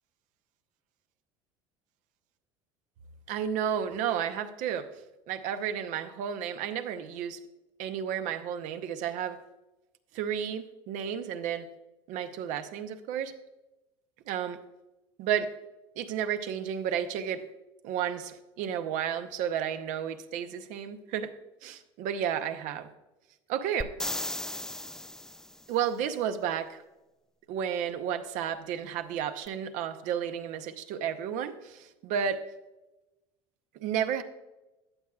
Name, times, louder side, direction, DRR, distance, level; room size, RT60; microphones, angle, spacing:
voice 1, 3.3-4.9 5.3-7.4 7.8-9.4 10.1-11.7 12.1-13.3 14.3-14.6 15.2-15.5 16.0-17.4 17.8-21.3 21.6-22.9 23.5-23.9 25.7-26.8 27.5-32.4 33.8-34.2, right 9 dB, 60° right, 9 dB, 0.8 m, -32 dB
sound 1, 23.8-25.6 29.5-29.6, left 1 dB, 5° left, 0.3 m, -36 dB
14.0 x 8.4 x 2.4 m, 1.0 s
hypercardioid pair, 70°, 14 cm